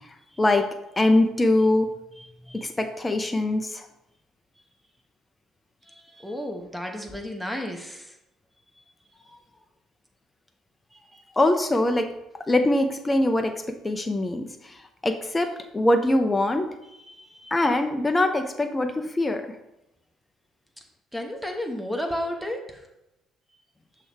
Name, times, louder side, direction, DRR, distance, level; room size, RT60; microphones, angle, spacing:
voice 1, 0.4-1.9 2.5-3.9 11.4-12.1 12.5-16.7 17.5-19.6, left 1 dB, 20° left, 6 dB, 0.5 m, -23 dB
voice 2, 2.2-2.7 5.8-8.2 8.8-8.9 10.9-11.2 16.9-17.5 21.1-22.9, left 1 dB, ahead, 2 dB, 1.0 m, -34 dB
6.1 x 3.3 x 4.8 m, 0.90 s
figure-of-eight pair, 50°, 0 cm